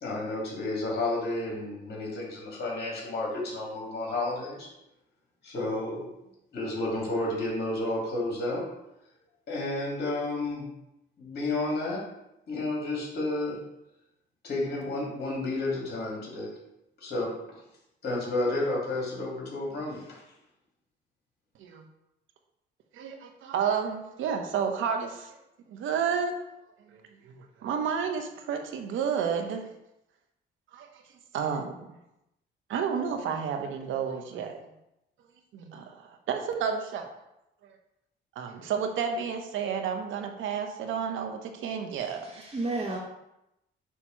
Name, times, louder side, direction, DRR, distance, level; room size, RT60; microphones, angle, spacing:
voice 1, 0.0-4.7 5.4-6.0 6.5-8.6 9.5-10.7 11.2-12.0 12.5-13.5 14.4-16.5 17.0-17.3 18.0-20.2, left 2 dB, 55° left, -4 dB, 2.5 m, -31 dB
voice 2, 22.9-25.4 25.7-26.3 26.9-27.0 27.2-29.6 30.7-30.9 31.3-32.0 32.7-34.6 35.5-37.0 37.6-37.7 38.4-42.3, right 7 dB, 80° right, 5 dB, 0.9 m, -31 dB
voice 3, 42.0-43.0, right 2 dB, 30° right, -5 dB, 1.3 m, -33 dB
6.5 x 2.9 x 5.6 m, 0.87 s
cardioid pair, 90°, 20 cm